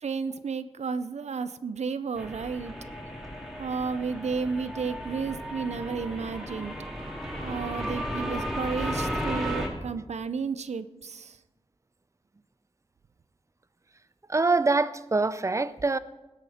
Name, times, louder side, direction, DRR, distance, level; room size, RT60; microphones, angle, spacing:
voice 1, 0.0-2.8 3.6-6.7 7.4-11.4, right 5 dB, 90° right, 0.6 m, -32 dB
sound 1, 2.1-9.7, equal, ahead, 2.8 m, -34 dB
voice 2, 14.3-16.0, right 3 dB, 25° right, 0.6 m, -24 dB
18.5 x 8.3 x 4.3 m
wide cardioid pair, 100°, 11 cm